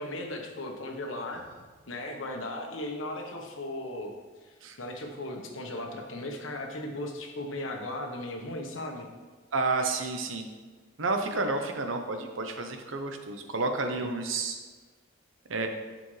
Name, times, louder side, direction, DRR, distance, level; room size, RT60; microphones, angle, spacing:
voice 1, 0.0-1.4 1.9-4.1 4.4-9.1 14.0-14.2, left 1 dB, 85° left, 2 dB, 1.2 m, -37 dB
voice 2, 9.5-10.4 11.0-14.6 15.5-15.7, right 3 dB, 85° right, 5 dB, 0.9 m, -30 dB
11.5 x 5.1 x 3.3 m, 1.4 s
head